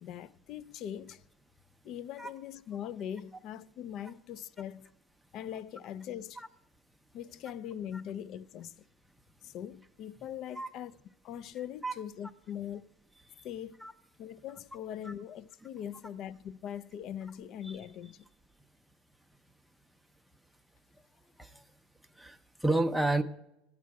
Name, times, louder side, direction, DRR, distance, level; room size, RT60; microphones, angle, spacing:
voice 1, 0.0-1.2 1.8-4.9 5.3-6.4 7.1-8.8 9.4-11.0 11.2-12.8 13.4-13.8 14.2-18.3, left 9 dB, 50° left, 0.3 m, -41 dB
voice 2, 22.2-23.2, right 2 dB, ahead, 0.5 m, -30 dB
9.2 x 7.5 x 4.6 m
supercardioid pair, 135°, 0 cm